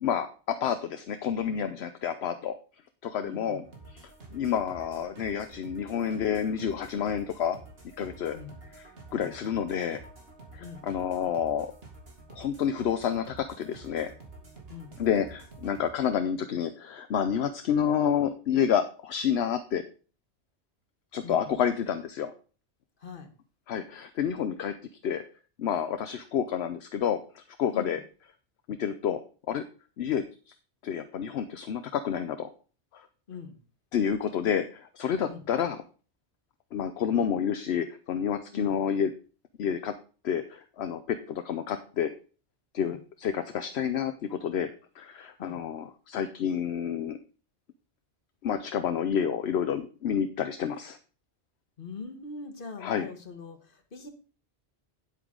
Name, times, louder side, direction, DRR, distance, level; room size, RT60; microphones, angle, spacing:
voice 1, 0.0-2.6 3.0-3.6 3.9-7.6 8.0-8.4 9.1-10.0 10.5-11.7 12.3-14.1 15.0-19.8 21.1-22.3 23.7-24.7 25.0-25.2 25.6-28.0 28.7-29.2 29.5-29.6 30.0-30.5 30.8-32.5 32.9-33.1 33.9-35.8 36.7-39.1 39.6-39.9 40.2-42.1 42.7-44.7 45.0-47.2 48.4-51.0 52.8-53.1, left 8 dB, 70° left, 9 dB, 0.9 m, -29 dB
voice 2, 3.2-3.7 8.3-8.5 9.1-9.3 10.6-10.8 14.7-14.9 21.2-21.6 23.0-23.3 27.7-28.0 33.3-33.6 35.2-35.4 38.5-38.8 42.8-43.0 45.4-45.6 51.8-54.1, left 5 dB, 50° left, 6 dB, 1.5 m, -42 dB
sound 1, 3.6-15.9, right 2 dB, 60° right, 2.4 m, -49 dB
9.4 x 8.2 x 3.8 m, 0.37 s
omnidirectional pair, 1.1 m